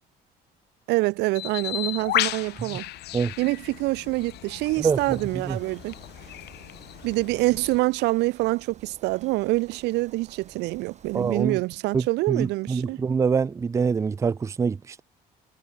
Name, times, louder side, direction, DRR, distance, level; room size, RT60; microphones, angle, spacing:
voice 1, 0.9-2.9 3.4-5.9 7.0-13.0, right 21 dB, 85° right, 0.6 m, -26 dB
Bird, 1.4-7.8, left 16 dB, 75° left, 2.8 m, -34 dB
sound 1, 4.6-11.4, right 7 dB, 40° right, 4.6 m, -50 dB
voice 2, 4.8-5.6 11.1-11.6 11.9-15.0, right 5 dB, 20° right, 0.3 m, -25 dB
cardioid pair, 110°, 17 cm